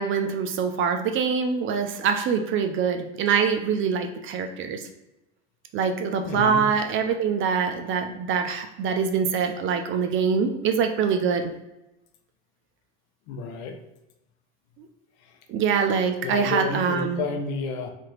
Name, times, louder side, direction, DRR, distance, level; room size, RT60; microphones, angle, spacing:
voice 1, 0.0-4.8 5.7-11.4 15.5-17.2, right 6 dB, 40° right, 6 dB, 0.4 m, -24 dB
voice 2, 6.2-6.7 13.3-13.8 16.2-17.9, left 4 dB, 65° left, 5 dB, 0.6 m, -30 dB
2.7 x 2.5 x 3.1 m, 0.95 s
hypercardioid pair, 90°, 33 cm